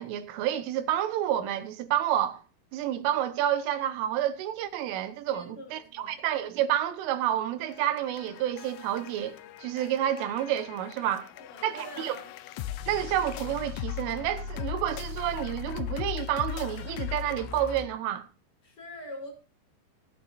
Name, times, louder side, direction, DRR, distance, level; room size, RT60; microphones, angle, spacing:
voice 1, 0.0-2.4 2.7-11.3 11.6-12.2 12.9-18.3, right 11 dB, 85° right, 3.7 m, -29 dB
voice 2, 5.3-6.1 11.3-12.3 18.6-19.3, equal, 20° left, 5.4 m, -44 dB
sound 1, 7.7-17.9, left 10 dB, 80° left, 2.6 m, -38 dB
18.5 x 11.0 x 2.6 m
omnidirectional pair, 5.6 m